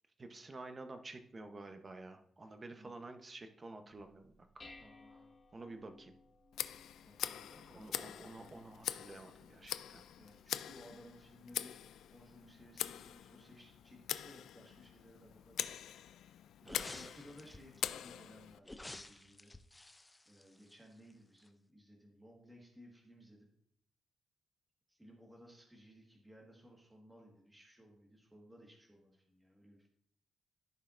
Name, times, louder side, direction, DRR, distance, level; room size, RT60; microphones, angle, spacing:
voice 1, 0.2-4.6 5.5-6.1 7.5-10.0 16.6-17.1, right 2 dB, 25° right, 7 dB, 0.8 m, -50 dB
voice 2, 2.4-3.0 4.8-5.7 7.0-8.1 9.4-9.5 9.7-11.7 12.1-16.2 16.7-19.5 20.3-23.5 24.9-29.9, equal, 5° right, -2 dB, 1.5 m, -59 dB
Dishes pots and pans, 3.9-13.1, left 2 dB, 30° left, 1.5 m, -63 dB
Tick, 6.5-18.6, left 10 dB, 90° left, 0.3 m, -44 dB
sound 1, 16.6-17.8 18.6-21.1 21.4-21.5, left 2 dB, 10° left, 0.5 m, -51 dB
15.0 x 5.5 x 2.5 m, 0.69 s
cardioid pair, 140°, 0 cm